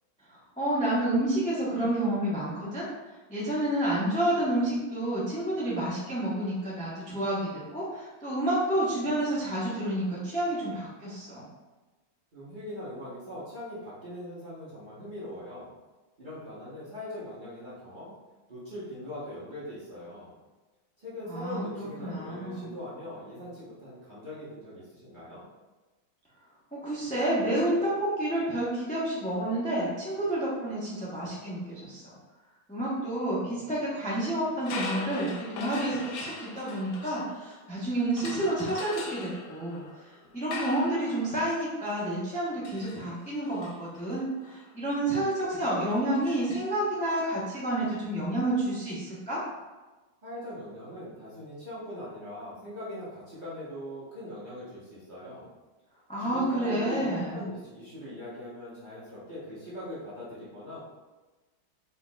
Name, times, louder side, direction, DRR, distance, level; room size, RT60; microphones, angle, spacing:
voice 1, 0.3-11.4 21.3-22.8 26.7-32.1 32.7-49.4 56.1-57.5, right 1 dB, 10° left, -8 dB, 0.3 m, -29 dB
voice 2, 12.3-15.7 16.2-18.1 18.5-20.3 21.0-25.4 50.2-55.5 56.2-60.8, left 1 dB, 35° right, -9 dB, 0.8 m, -41 dB
sound 1, 34.6-37.7 38.2-47.2, left 3 dB, 85° left, 1.5 m, -42 dB
4.4 x 3.9 x 2.3 m, 1.2 s
omnidirectional pair, 2.2 m